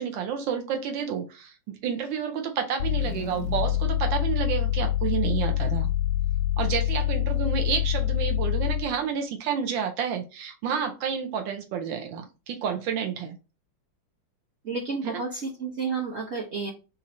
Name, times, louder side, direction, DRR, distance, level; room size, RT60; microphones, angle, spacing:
voice 1, 0.0-5.9 6.6-13.4 15.0-15.2, right 7 dB, 85° right, 5 dB, 1.4 m, -30 dB
sound 1, 2.8-9.0, left 12 dB, 90° left, 1.5 m, -26 dB
voice 2, 14.6-16.7, right 4 dB, 50° right, -1 dB, 0.8 m, -31 dB
4.2 x 2.6 x 4.1 m, 0.30 s
omnidirectional pair, 2.0 m